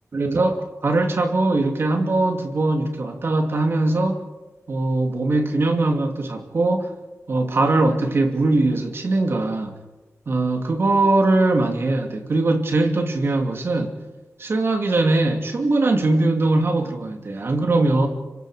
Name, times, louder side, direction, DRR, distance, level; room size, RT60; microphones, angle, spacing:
voice 1, 0.1-4.2 4.7-6.9 7.3-9.7 10.3-14.0 14.4-18.1, right 2 dB, 50° right, 2.7 m, -21 dB
26.0 x 24.0 x 5.1 m
wide cardioid pair, 155°, 5 cm